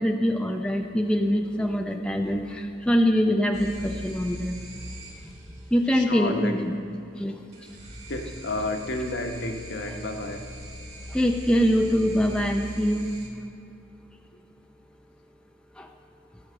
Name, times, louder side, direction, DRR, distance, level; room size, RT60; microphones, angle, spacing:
voice 1, 0.0-4.5 5.2-5.3 5.7-6.7 7.2-7.4 11.1-13.1 15.8-15.9, equal, 5° left, 3 dB, 0.5 m, -24 dB
sound 1, 3.5-5.9 7.5-13.3, equal, 40° right, 2.9 m, -40 dB
voice 2, 5.9-6.6 8.1-10.5, left 2 dB, 60° left, 3 dB, 1.2 m, -31 dB
16.5 x 6.3 x 7.6 m, 2.6 s
head